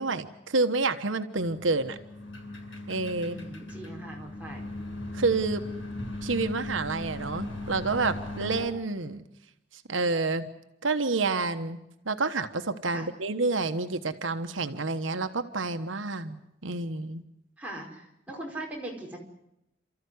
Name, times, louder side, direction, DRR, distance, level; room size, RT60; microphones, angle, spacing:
voice 1, 0.0-2.0 2.9-3.3 5.1-5.6 6.2-9.2 9.9-10.5 10.8-11.8 12.0-17.2, right 3 dB, 85° right, 9 dB, 1.3 m, -29 dB
sound 1, 1.4-8.7, left 1 dB, 85° left, 7.8 m, -38 dB
voice 2, 3.2-4.6 12.9-13.1 17.6-19.2, right 1 dB, 5° right, -2 dB, 5.0 m, -40 dB
29.0 x 14.0 x 9.6 m, 0.85 s
head